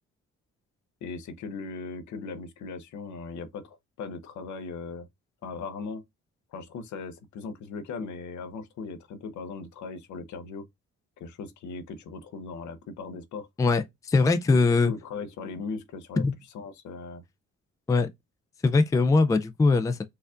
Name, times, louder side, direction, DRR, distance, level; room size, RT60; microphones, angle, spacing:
voice 1, 1.0-5.1 5.4-6.0 6.5-10.6 11.2-13.5 14.5-14.6 14.8-16.2 16.5-17.2, left 4 dB, 75° left, 0.7 m, -38 dB
voice 2, 13.6-14.9 16.2-16.3 17.9-18.1 18.6-20.1, left 3 dB, 10° left, 0.3 m, -22 dB
4.5 x 2.4 x 2.4 m
cardioid pair, 90°, 30 cm